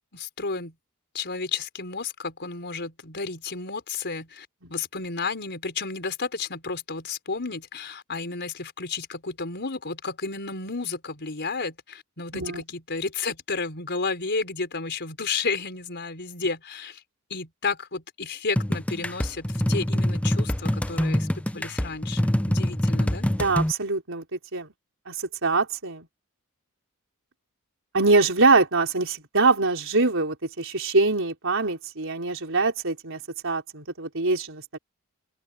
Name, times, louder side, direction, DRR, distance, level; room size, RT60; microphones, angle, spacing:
voice 1, 0.1-0.7 1.1-17.0 17.3-23.3, left 4 dB, 50° left, 4.7 m, -32 dB
sound 1, 18.6-23.7, equal, 5° left, 0.6 m, -25 dB
voice 2, 23.3-24.7 25.1-26.1 27.9-34.8, right 3 dB, 60° right, 4.6 m, -24 dB
open air
head